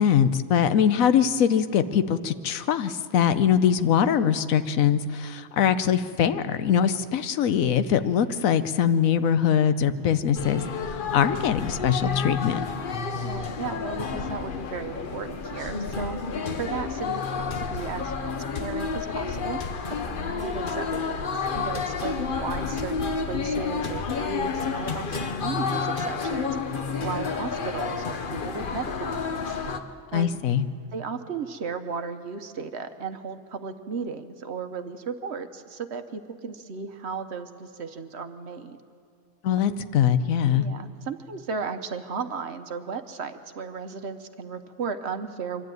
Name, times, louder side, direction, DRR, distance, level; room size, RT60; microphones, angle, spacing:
voice 1, 0.0-10.6 10.9-12.6 30.1-30.6 39.4-40.6, left 8 dB, 85° left, 12 dB, 1.2 m, -22 dB
sound 1, 10.4-29.8, left 5 dB, 45° left, 0.9 m, -30 dB
voice 2, 13.2-16.1 16.6-19.6 19.9-26.6 27.0-29.5 30.1-30.3 30.9-38.8 39.6-39.8 40.5-45.7, right 5 dB, 55° right, 9 dB, 1.1 m, -35 dB
24.0 x 12.0 x 9.1 m, 2.4 s
omnidirectional pair, 1.4 m